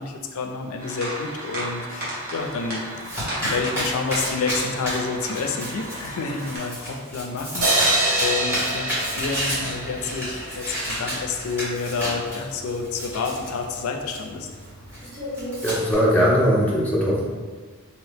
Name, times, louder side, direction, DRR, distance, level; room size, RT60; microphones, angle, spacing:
voice 1, 0.0-2.9 3.5-14.5, left 4 dB, 80° left, 4 dB, 0.4 m, -29 dB
sound 1, 0.8-6.6, right 1 dB, 45° right, 1.0 m, -34 dB
Domestic sounds home sounds, 2.4-15.9, equal, 15° right, 1.4 m, -32 dB
sound 2, 7.6-10.9, right 1 dB, 80° right, 1.0 m, -25 dB
voice 2, 15.6-17.2, equal, 5° left, -5 dB, 0.5 m, -19 dB
2.7 x 2.6 x 3.4 m, 1.5 s
head